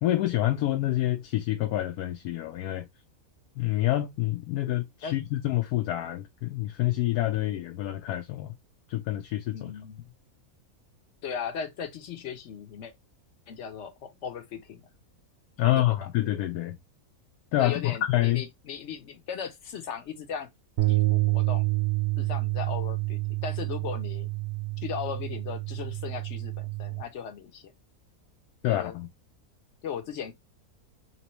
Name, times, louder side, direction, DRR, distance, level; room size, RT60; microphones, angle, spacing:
voice 1, 0.0-2.9 3.6-8.5 8.9-9.7 15.6-16.8 17.5-18.4 28.6-29.1, left 15 dB, 85° left, 1.1 m, -27 dB
voice 2, 9.5-10.0 11.2-12.9 13.5-14.9 15.6-16.1 17.6-20.5 20.9-21.7 22.2-24.3 24.8-27.7 28.6-29.0 29.8-30.3, left 7 dB, 55° left, 1.0 m, -37 dB
sound 1, 20.8-27.0, right 22 dB, 60° right, 0.7 m, -28 dB
3.7 x 3.0 x 3.0 m
omnidirectional pair, 1.6 m